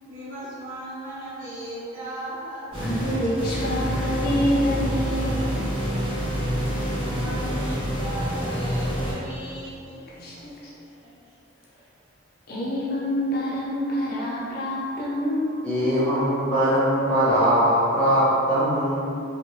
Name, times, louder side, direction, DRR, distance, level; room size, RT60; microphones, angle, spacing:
voice 1, 0.0-2.7 7.1-10.0 11.0-11.1, right 1 dB, 45° right, -14 dB, 1.5 m, -37 dB
voice 2, 2.7-5.6 10.1-10.7 12.5-15.6, equal, 55° left, -7 dB, 0.6 m, -27 dB
sound 1, 2.7-9.1, equal, 30° right, 1.2 m, -27 dB
voice 3, 15.6-19.0, equal, 5° left, -12 dB, 0.6 m, -21 dB
2.7 x 2.5 x 3.0 m, 2.7 s
head